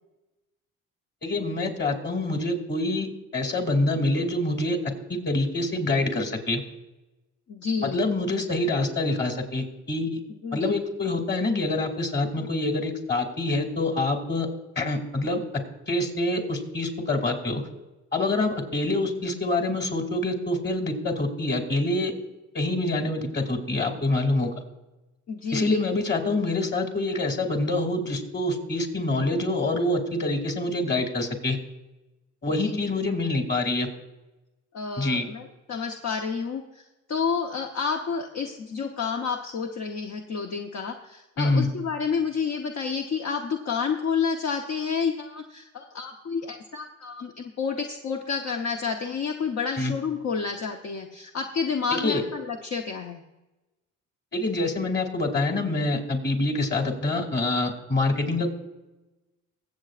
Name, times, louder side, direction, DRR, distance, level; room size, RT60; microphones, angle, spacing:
voice 1, 1.2-3.1 3.3-4.8 5.1-6.6 7.8-10.2 10.5-14.5 14.8-15.4 15.9-17.6 18.1-22.1 22.5-24.5 25.5-31.6 32.4-33.9 35.0-35.3 41.4-41.7 49.7-49.9 51.9-52.2 54.3-58.5, left 2 dB, 35° left, 4 dB, 2.6 m, -26 dB
voice 2, 7.5-8.1 10.4-10.7 25.3-25.8 32.6-32.9 34.7-36.8 37.1-53.2, left 5 dB, 55° left, 2 dB, 1.0 m, -30 dB
23.0 x 7.9 x 2.5 m, 1.1 s
cardioid pair, 90°, 30 cm